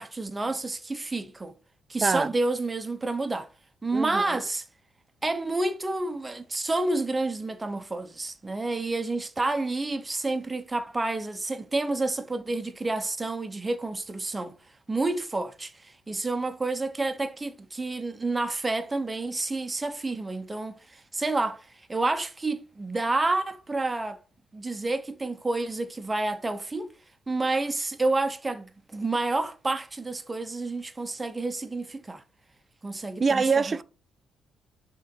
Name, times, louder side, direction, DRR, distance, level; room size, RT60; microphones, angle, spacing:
voice 1, 0.0-1.5 1.9-3.5 3.8-4.6 5.2-14.6 14.9-21.6 21.9-24.2 24.5-26.9 27.3-32.2 32.8-33.8, right 2 dB, 20° right, 0.8 m, -29 dB
voice 2, 2.0-2.3 3.9-4.4 33.2-33.8, right 5 dB, 35° right, 0.3 m, -25 dB
6.1 x 3.8 x 4.5 m
cardioid pair, 90°, 0 cm